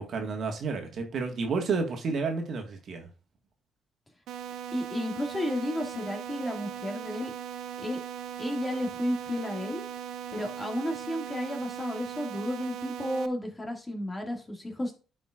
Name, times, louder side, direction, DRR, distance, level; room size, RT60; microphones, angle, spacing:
voice 1, 0.0-3.1, right 4 dB, 60° right, 3 dB, 1.7 m, -31 dB
sound 1, 4.3-13.3, right 9 dB, 80° right, 0.5 m, -39 dB
voice 2, 4.7-7.3 7.8-8.0 8.4-9.8 10.3-14.9, left 1 dB, 20° left, 2 dB, 2.2 m, -32 dB
10.5 x 5.2 x 2.5 m, 0.35 s
cardioid pair, 90°, 0 cm